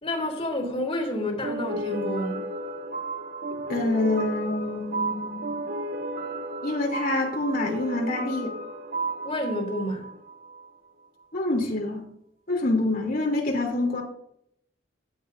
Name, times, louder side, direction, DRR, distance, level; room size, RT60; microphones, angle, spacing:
voice 1, 0.0-2.4 9.2-10.0, left 1 dB, 35° left, 3.6 m, -29 dB
sound 1, 1.4-10.7, right 2 dB, 55° right, 1.6 m, -33 dB
voice 2, 3.7-5.6 6.6-8.6 11.3-12.0 12.5-14.0, left 2 dB, 50° left, 3.2 m, -26 dB
16.0 x 12.5 x 2.7 m
head